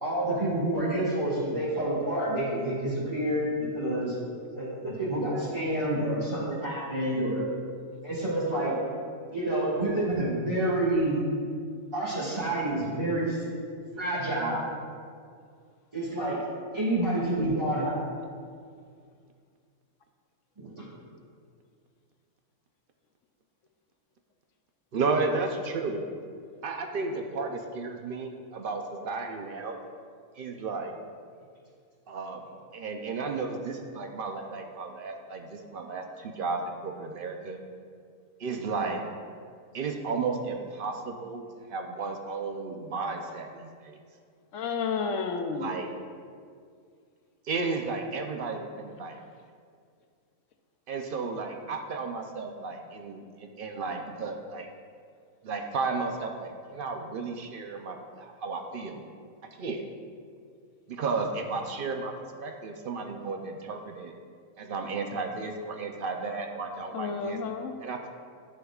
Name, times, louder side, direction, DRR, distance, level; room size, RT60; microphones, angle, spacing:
voice 1, 0.0-3.5 3.7-4.1 4.6-7.5 8.0-8.7 9.3-11.2 11.9-13.4 14.0-14.7 15.9-16.4 16.7-18.0 20.6-20.8, right 1 dB, 20° right, -11 dB, 1.7 m, -28 dB
voice 2, 24.9-26.0 26.6-29.8 30.4-30.9 32.1-32.4 32.7-37.6 38.4-39.0 39.7-41.4 41.7-44.0 45.5-45.9 47.4-49.2 50.9-54.7 55.4-59.0 59.6-59.8 60.9-62.1 62.4-64.1 64.6-67.4 67.8-68.1, right 4 dB, 60° right, 4 dB, 0.6 m, -33 dB
voice 3, 44.5-45.7 66.9-67.7, left 5 dB, 70° left, 6 dB, 0.8 m, -31 dB
10.5 x 6.5 x 2.4 m, 2.2 s
omnidirectional pair, 1.5 m